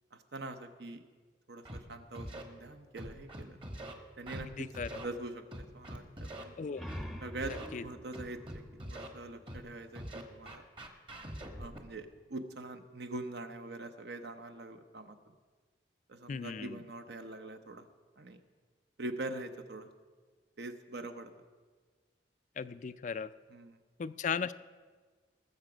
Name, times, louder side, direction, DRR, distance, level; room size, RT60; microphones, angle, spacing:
voice 1, 0.3-1.0 1.5-3.6 4.2-5.4 5.7-6.6 7.2-7.6 7.8-8.6 8.9-10.6 11.6-15.2 16.1-17.9 18.2-18.4 19.0-19.9 20.6-21.3 23.5-23.8, right 2 dB, 65° right, 7 dB, 0.9 m, -43 dB
Scratching (performance technique), 1.7-1.8 2.1-2.4 3.0-3.9 4.3-4.4 4.7-5.1 5.5-6.4 6.9-7.0 7.4-7.7 8.1-9.1 9.5-9.6 9.9-11.8, right 1 dB, 30° right, 1.1 m, -43 dB
voice 2, 4.6-5.0 6.6-6.8 7.7-7.8 16.3-16.8 22.6-23.3 24.0-24.5, left 6 dB, 45° left, 14 dB, 0.4 m, -36 dB
sound 1, 6.5-9.9, equal, ahead, 0.6 m, -47 dB
20.5 x 6.9 x 5.1 m, 1.5 s
head